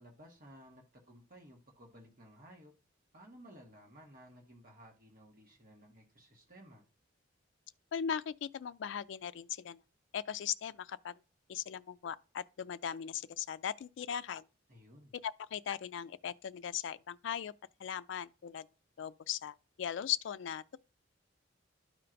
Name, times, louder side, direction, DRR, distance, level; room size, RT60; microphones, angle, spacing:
voice 1, 0.0-2.7 3.1-6.8 14.7-15.1, equal, 45° right, 1.5 m, -56 dB
voice 2, 7.9-9.8 10.1-11.1 11.5-14.4 15.2-17.5 17.8-18.7 19.0-20.8, left 8 dB, 65° left, 0.3 m, -38 dB
12.5 x 4.4 x 2.6 m
head